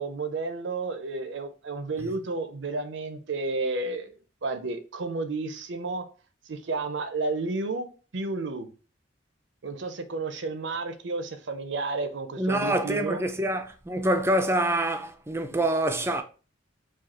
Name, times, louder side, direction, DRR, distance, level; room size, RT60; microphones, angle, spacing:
voice 1, 0.0-4.1 4.4-6.0 6.5-8.7 9.6-13.2, right 3 dB, 75° right, 0.6 m, -31 dB
voice 2, 12.4-16.2, right 1 dB, 15° right, 0.4 m, -26 dB
4.9 x 2.4 x 4.2 m
head